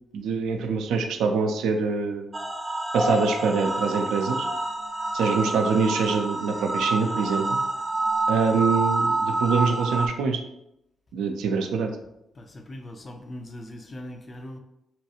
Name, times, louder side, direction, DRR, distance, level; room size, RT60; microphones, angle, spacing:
voice 1, 0.1-2.3 2.9-4.5 5.1-7.6 8.3-10.4 11.1-11.9, right 5 dB, 75° right, 5 dB, 0.4 m, -24 dB
sound 1, 2.3-10.1, right 2 dB, 25° right, 0.6 m, -27 dB
voice 2, 12.3-14.6, left 1 dB, 40° left, 4 dB, 0.6 m, -40 dB
4.2 x 2.3 x 2.9 m, 0.82 s
hypercardioid pair, 45°, 0 cm